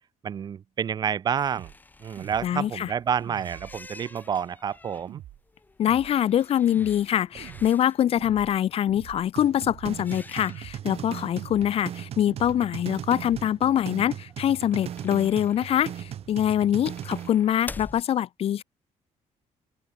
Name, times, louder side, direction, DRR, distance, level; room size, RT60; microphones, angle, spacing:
voice 1, 0.2-1.7 2.0-5.2, right 8 dB, 30° right, 0.5 m, -29 dB
sound 1, 1.4-8.0 9.9-11.1 11.4-11.5 11.7-11.8 14.3-18.0, left 3 dB, 15° left, 4.8 m, -47 dB
sound 2, 1.6-1.8 2.2-2.6 3.2-3.9 5.1-5.4 5.8-6.2 6.7-7.1 7.3-7.7 8.2-8.6 8.9-9.3 9.6-10.0 10.5-10.8 11.4-11.8 12.3-12.6 13.2-13.4, right 14 dB, 70° right, 1.1 m, -44 dB
voice 2, 2.4-2.9 5.8-18.6, left 10 dB, 45° left, 0.8 m, -24 dB
sound 3, 9.4-17.4, right 10 dB, 50° right, 1.4 m, -38 dB
cardioid pair, 170°, 13 cm